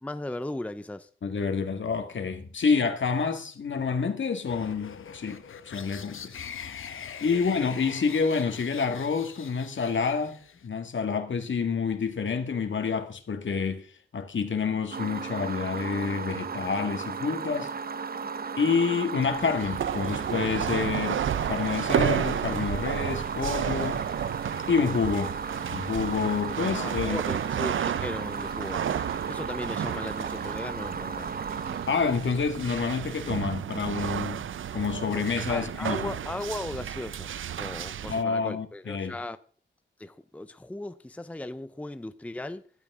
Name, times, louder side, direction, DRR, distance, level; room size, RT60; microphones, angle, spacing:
voice 1, 0.0-1.1 7.3-7.6 26.7-28.8 29.3-31.4 35.5-39.4 40.0-42.6, left 1 dB, 5° left, 0.6 m, -37 dB
voice 2, 1.2-6.4 7.2-13.9 14.1-17.7 18.6-24.0 24.7-25.4 25.7-27.2 31.9-34.4 34.7-36.1 38.1-39.2, left 5 dB, 70° left, 1.9 m, -28 dB
sound 1, 4.5-10.7, left 7 dB, 90° left, 1.0 m, -42 dB
sound 2, 14.9-32.9, right 5 dB, 50° right, 0.7 m, -35 dB
sound 3, 19.3-38.2, right 9 dB, 80° right, 0.5 m, -32 dB
14.5 x 12.0 x 3.7 m
wide cardioid pair, 105°, 20 cm